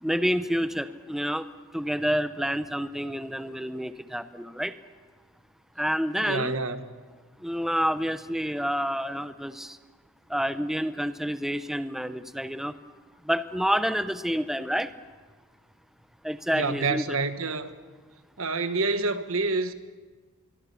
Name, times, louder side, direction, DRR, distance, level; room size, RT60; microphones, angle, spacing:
voice 1, 0.0-1.4 1.7-4.7 5.8-6.6 7.4-9.8 10.3-12.7 13.2-14.9 16.2-17.0, equal, ahead, 0.8 m, -28 dB
voice 2, 6.2-6.9 16.5-17.7 18.4-19.7, right 3 dB, 70° right, 1.5 m, -28 dB
26.0 x 23.0 x 7.2 m
head